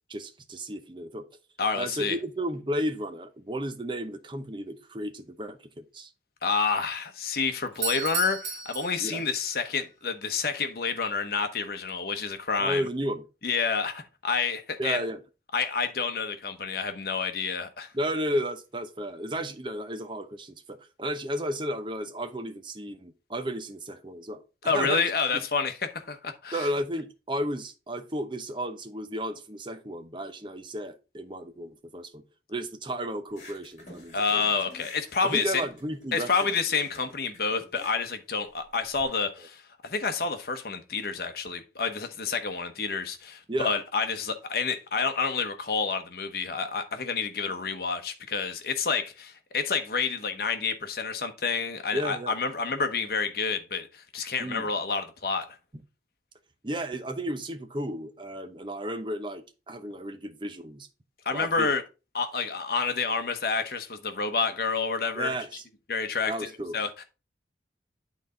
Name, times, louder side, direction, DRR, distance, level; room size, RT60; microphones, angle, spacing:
voice 1, 0.1-1.3 1.7-6.1 9.0-9.2 12.6-13.2 14.8-15.2 17.9-25.0 26.5-32.2 32.5-34.5 35.2-36.3 43.5-43.7 51.9-52.4 54.4-54.7 56.6-60.9 61.3-61.7 65.2-65.6 66.3-66.8, right 1 dB, 25° right, 0.7 m, -33 dB
voice 2, 1.6-2.2 6.4-12.8 13.4-15.0 15.5-17.9 24.6-26.7 34.1-35.6 36.1-55.5 61.2-61.8 62.1-65.3 65.9-67.0, left 5 dB, 55° left, 0.9 m, -29 dB
Doorbell, 7.7-9.6, right 6 dB, 80° right, 2.0 m, -34 dB
sound 1, 33.3-39.0, left 2 dB, 40° left, 2.5 m, -49 dB
9.0 x 4.1 x 3.7 m
head